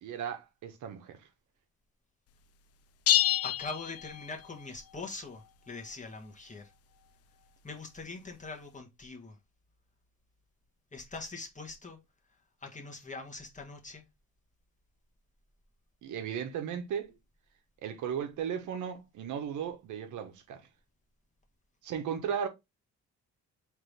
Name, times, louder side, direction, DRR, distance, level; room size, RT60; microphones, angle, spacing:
voice 1, 0.0-1.2 16.0-17.2 17.8-20.7 21.8-22.5, right 8 dB, 75° right, 1.1 m, -36 dB
sound 1, 3.1-4.6, left 13 dB, 55° left, 0.5 m, -28 dB
voice 2, 3.4-6.7 7.6-9.4 10.9-12.0 12.6-14.1, left 3 dB, 25° left, 1.4 m, -43 dB
3.9 x 3.4 x 3.3 m
cardioid pair, 90°, 30 cm